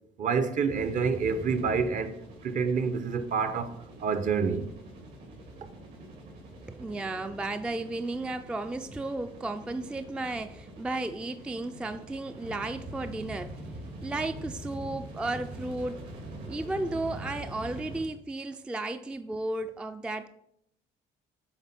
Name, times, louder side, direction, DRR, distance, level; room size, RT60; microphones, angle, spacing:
voice 1, 0.2-2.2 2.4-4.7, right 5 dB, 50° right, 0.7 m, -28 dB
sound 1, 0.7-18.0, right 1 dB, 75° right, 2.7 m, -44 dB
voice 2, 6.7-13.6 14.0-16.0 16.5-20.3, right 2 dB, 5° right, 0.3 m, -34 dB
8.0 x 3.5 x 5.9 m
cardioid pair, 110°, 17 cm